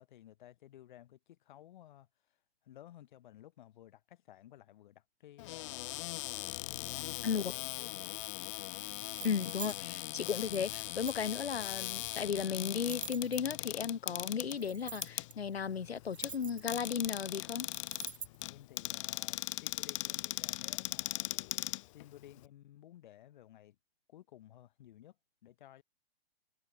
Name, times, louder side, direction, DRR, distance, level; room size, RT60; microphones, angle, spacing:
voice 1, 0.0-2.4 2.6-8.3 9.0-9.3 18.4-21.3 21.9-23.8 24.1-25.2 25.4-25.8, left 12 dB, 50° left, 4.9 m, -56 dB
Cupboard open or close, 5.4-22.5, left 20 dB, 30° left, 0.7 m, -40 dB
sound 1, 9.1-9.8 10.5-11.4 12.1-13.7 14.5-15.3 16.0-17.1 17.7-18.5, right 7 dB, 75° right, 0.9 m, -47 dB
voice 2, 9.2-17.7, left 7 dB, 70° left, 1.5 m, -35 dB
figure-of-eight pair, 120°, 32 cm